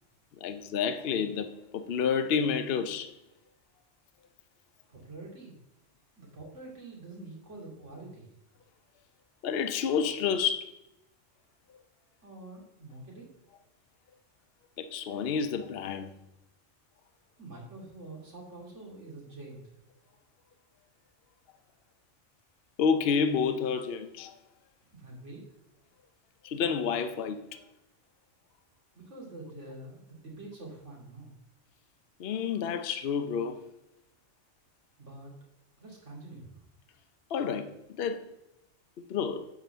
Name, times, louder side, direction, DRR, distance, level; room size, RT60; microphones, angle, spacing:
voice 1, 0.4-3.1 9.4-10.7 11.7-11.8 14.8-16.1 22.8-24.3 26.4-27.6 32.2-33.6 37.3-38.3 39.1-39.5, left 6 dB, 55° left, 0.8 m, -29 dB
voice 2, 4.9-5.6 6.2-8.3 12.2-13.3 17.4-19.7 24.9-25.5 28.9-31.4 35.0-35.3 35.8-36.6, right 2 dB, 65° right, 2.9 m, -46 dB
9.4 x 3.9 x 6.6 m
omnidirectional pair, 1.3 m